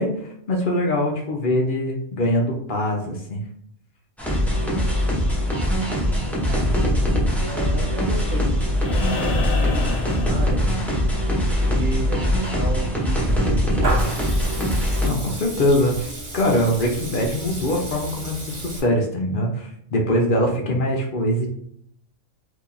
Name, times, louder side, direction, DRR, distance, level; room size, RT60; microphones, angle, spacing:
voice 1, 0.0-3.4 15.0-18.4 18.6-21.5, left 1 dB, 55° left, 0 dB, 0.6 m, -22 dB
sound 1, 4.2-15.1, equal, ahead, 0.4 m, -22 dB
voice 2, 6.4-6.7 7.2-8.5 9.1-10.9 11.6-14.3, right 3 dB, 80° right, 0 dB, 1.1 m, -32 dB
sound 2, 8.8-11.1 12.9-13.0, left 4 dB, 80° left, 1.0 m, -30 dB
Water tap faucet / Liquid, 13.1-18.8, right 2 dB, 50° right, 1.2 m, -32 dB
2.9 x 2.6 x 3.8 m, 0.69 s
omnidirectional pair, 1.4 m